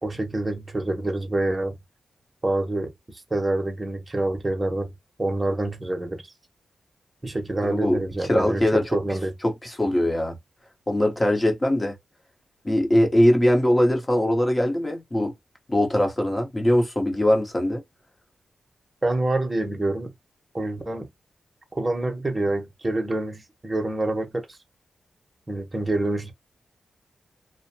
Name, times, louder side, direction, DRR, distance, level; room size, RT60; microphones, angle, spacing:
voice 1, 0.0-1.8 2.4-4.9 5.2-6.2 7.2-9.3 19.0-20.1 20.5-21.1 21.7-24.5 25.5-26.3, right 2 dB, 25° right, 0.9 m, -26 dB
voice 2, 7.6-8.0 8.3-9.0 9.4-10.4 10.9-12.0 12.6-15.3 15.7-17.8, left 1 dB, 20° left, 0.9 m, -21 dB
2.6 x 2.1 x 2.7 m
cardioid pair, 80°, 0 cm